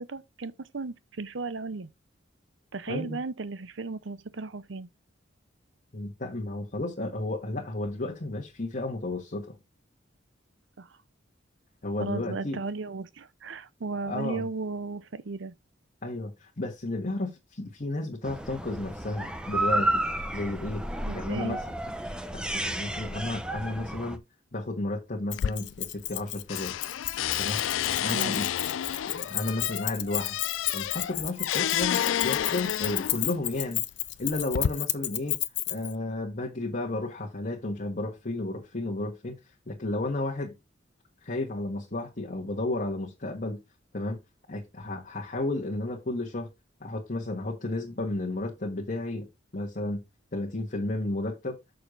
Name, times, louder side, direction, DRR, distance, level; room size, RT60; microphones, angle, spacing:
voice 1, 0.0-1.9 2.7-4.9 10.8-10.9 12.0-15.5 21.1-21.6 28.1-28.4, right 3 dB, 70° right, 0.8 m, -35 dB
voice 2, 2.9-3.2 5.9-9.5 11.8-12.6 13.9-14.5 16.0-20.0 20.3-20.8 21.1-21.6 22.3-24.2 24.5-26.7 27.4-27.6 28.0-28.5 29.1-30.4 30.7-33.8 34.2-35.4 35.7-39.3 39.7-40.5 41.2-43.6 43.9-44.2 44.5-46.5 46.8-49.3 49.5-50.0 50.3-51.6, left 2 dB, 45° left, 1.6 m, -32 dB
sound 1, 18.2-24.2, right 1 dB, 5° right, 0.9 m, -31 dB
sound 2, 25.3-26.2 26.5-33.3 34.1-34.7, left 10 dB, 85° left, 0.4 m, -30 dB
Keys jangling, 25.3-35.9, left 16 dB, 65° left, 0.7 m, -32 dB
6.7 x 6.7 x 3.8 m
head